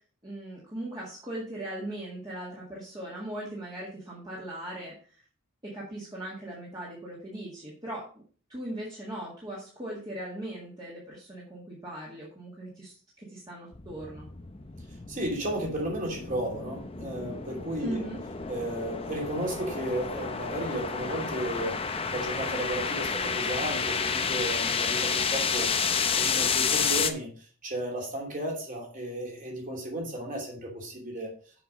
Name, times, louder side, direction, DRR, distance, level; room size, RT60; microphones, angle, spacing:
voice 1, 0.2-5.2 5.6-8.1 8.5-14.3 17.8-18.2, right 1 dB, 20° right, -5 dB, 1.9 m, -39 dB
sound 1, 13.7-27.1, left 5 dB, 25° left, 0.6 m, -30 dB
voice 2, 15.1-18.0 18.5-21.8 22.1-25.7 26.1-27.3 27.6-31.3, right 1 dB, 35° right, -1 dB, 2.8 m, -33 dB
7.0 x 6.1 x 5.1 m, 0.42 s
head